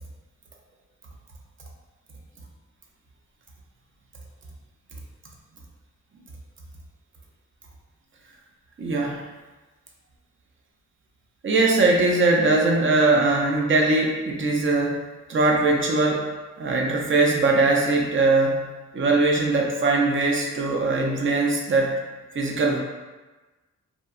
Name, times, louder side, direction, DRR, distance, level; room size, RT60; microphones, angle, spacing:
voice 1, 8.8-9.2 11.4-16.3 16.6-18.6 18.9-21.9 22.3-22.8, right 3 dB, 40° right, 0 dB, 0.5 m, -21 dB
2.7 x 2.2 x 2.3 m, 1.2 s
wide cardioid pair, 105°, 30 cm